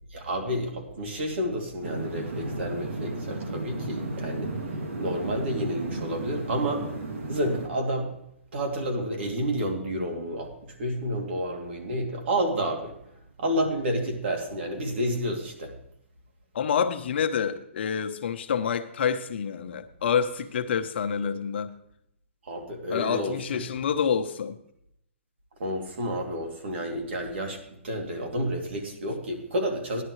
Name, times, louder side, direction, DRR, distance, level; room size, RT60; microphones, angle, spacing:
voice 1, 0.1-4.5 5.0-6.9 7.3-8.1 8.5-12.9 13.4-15.7 22.4-23.6 25.6-27.6 27.8-30.0, equal, 60° right, 2.8 m, -30 dB
sound 1, 1.8-7.7, right 2 dB, 85° right, 2.4 m, -34 dB
voice 2, 16.5-21.7 22.9-24.6, left 7 dB, 60° left, 0.9 m, -27 dB
14.5 x 11.0 x 3.2 m
hypercardioid pair, 160°, 7 cm